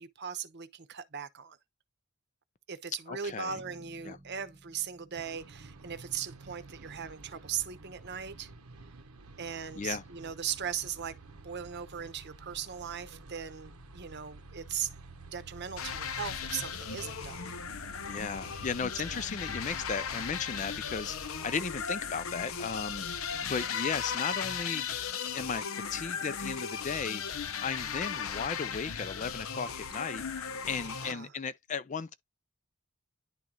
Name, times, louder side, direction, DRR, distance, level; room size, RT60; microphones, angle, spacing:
voice 1, 0.0-1.6 2.7-8.5 9.4-11.1 11.4-14.9 15.3-17.5 19.1-19.3 23.3-23.7 30.8-31.3, right 8 dB, 50° right, 0.8 m, -39 dB
voice 2, 3.1-3.6 4.0-4.2 9.7-10.0 18.1-24.8 25.3-32.1, left 5 dB, 35° left, 0.4 m, -36 dB
Bass guitar, 3.5-7.4, right 1 dB, 20° right, 1.0 m, -58 dB
sound 1, 5.1-23.5, right 3 dB, 85° right, 0.9 m, -51 dB
sound 2, 15.8-31.1, left 7 dB, 70° left, 0.7 m, -37 dB
10.5 x 3.8 x 2.9 m
head